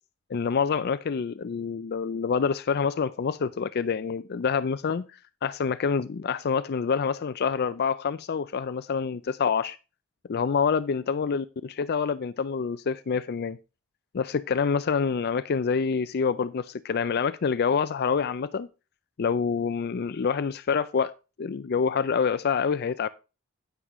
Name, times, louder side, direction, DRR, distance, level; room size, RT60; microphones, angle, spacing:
voice 1, 0.3-9.8 10.3-11.4 11.8-13.6 14.1-18.7 19.2-21.1 21.4-23.1, left 6 dB, 50° left, 0.4 m, -27 dB
9.5 x 9.5 x 3.1 m
head